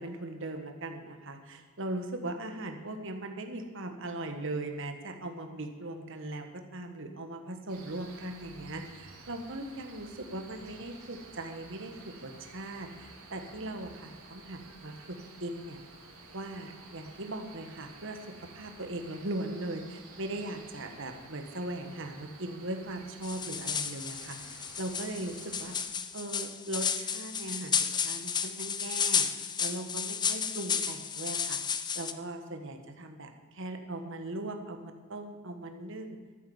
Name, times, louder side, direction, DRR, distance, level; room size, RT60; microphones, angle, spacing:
voice 1, 0.0-15.8 16.3-25.8 26.1-27.8 28.0-29.3 29.6-31.6 31.9-36.2, right 2 dB, 60° right, 5 dB, 1.5 m, -39 dB
Cricket, 7.7-25.9, right 3 dB, 90° right, 3.1 m, -52 dB
sound 1, 23.2-32.1, left 7 dB, 20° left, 0.5 m, -32 dB
13.0 x 9.4 x 7.3 m, 1.5 s
head